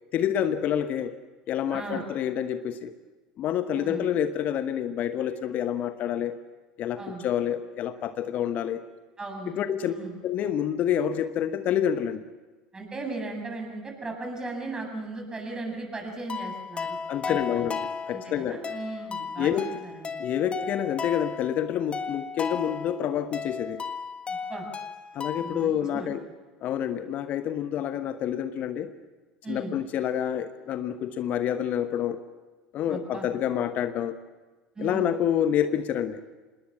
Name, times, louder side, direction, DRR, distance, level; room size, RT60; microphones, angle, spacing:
voice 1, 0.1-1.2 1.5-2.9 3.4-6.4 6.8-8.8 9.5-9.9 10.2-12.2 17.1-18.6 19.4-19.7 20.2-23.8 25.1-26.3 26.6-28.9 29.5-32.2 32.7-34.2 34.8-36.2, left 9 dB, 50° left, 10 dB, 1.1 m, -28 dB
voice 2, 1.7-2.1 3.7-4.1 7.0-7.3 9.2-9.6 9.8-10.2 12.7-17.0 17.3-17.6 18.1-19.5 19.8-20.2 24.3-24.7 25.3-26.1 29.4-29.8 32.9-33.3 34.8-35.1, right 3 dB, 20° right, 3 dB, 7.7 m, -37 dB
sound 1, 16.3-25.7, left 5 dB, 30° left, 1.8 m, -35 dB
26.5 x 20.5 x 7.4 m, 1.3 s
figure-of-eight pair, 70°, 4 cm